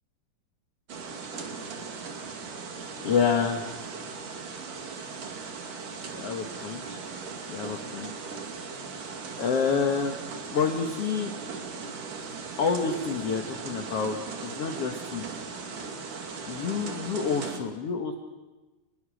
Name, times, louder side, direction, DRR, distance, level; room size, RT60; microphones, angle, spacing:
sound 1, 0.9-17.6, right 5 dB, 55° right, 3.8 m, -38 dB
voice 1, 3.0-3.6 6.1-7.0 7.5-8.1 9.4-10.2 10.5-11.3 12.6-14.2 14.4-15.2 16.5-18.1, left 6 dB, 55° left, 4 dB, 1.8 m, -28 dB
29.0 x 22.0 x 6.5 m, 1.2 s
omnidirectional pair, 4.6 m